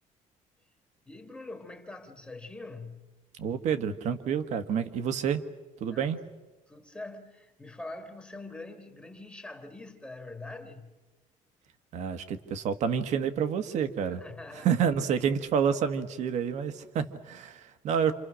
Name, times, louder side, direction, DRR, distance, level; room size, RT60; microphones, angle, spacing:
voice 1, 1.1-3.1 5.9-6.1 6.7-11.0 14.1-14.7, left 2 dB, 10° left, 1.7 m, -44 dB
voice 2, 3.4-5.4 5.8-6.2 11.9-14.2 14.6-18.1, right 7 dB, 55° right, 1.6 m, -28 dB
28.5 x 27.0 x 6.4 m
cardioid pair, 165°, 14 cm